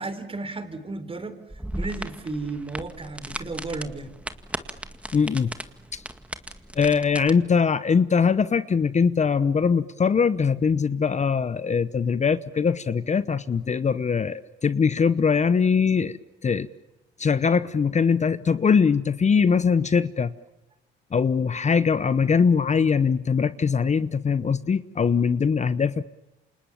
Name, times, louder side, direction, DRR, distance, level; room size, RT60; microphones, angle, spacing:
voice 1, 0.0-1.4 1.8-4.1, right 3 dB, 30° right, 11 dB, 4.2 m, -33 dB
sound 1, 1.5-7.3, right 1 dB, 5° right, 2.0 m, -36 dB
voice 2, 5.1-5.5 6.8-16.7 17.2-20.3 21.1-26.0, left 6 dB, 35° left, 14 dB, 1.0 m, -22 dB
29.0 x 27.0 x 7.3 m, 1.0 s
cardioid pair, 90°, 20 cm